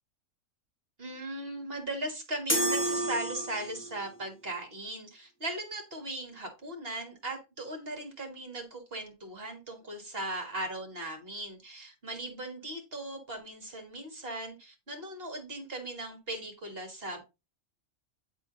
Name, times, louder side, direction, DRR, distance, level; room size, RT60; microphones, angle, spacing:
voice 1, 1.0-17.2, right 1 dB, 50° right, 4 dB, 1.7 m, -38 dB
sound 1, 2.5-4.0, right 1 dB, 10° left, 1.3 m, -30 dB
9.4 x 3.8 x 3.7 m, 0.26 s
omnidirectional pair, 1.3 m